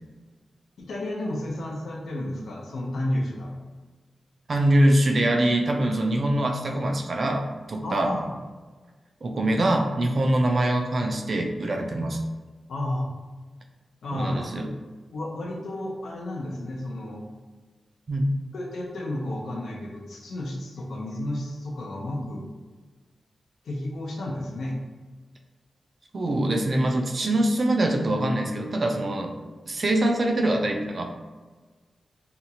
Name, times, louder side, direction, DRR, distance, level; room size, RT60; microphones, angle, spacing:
voice 1, 0.8-3.5 7.8-8.3 12.7-13.1 14.0-14.5 15.1-17.3 18.5-22.4 23.6-24.8, left 1 dB, 90° left, -1 dB, 0.6 m, -32 dB
voice 2, 4.5-8.1 9.2-12.2 14.1-14.7 18.1-18.3 26.1-29.3 29.7-31.1, right 1 dB, 40° right, 2 dB, 0.3 m, -23 dB
2.8 x 2.3 x 2.7 m, 1.3 s
wide cardioid pair, 165°, 0 cm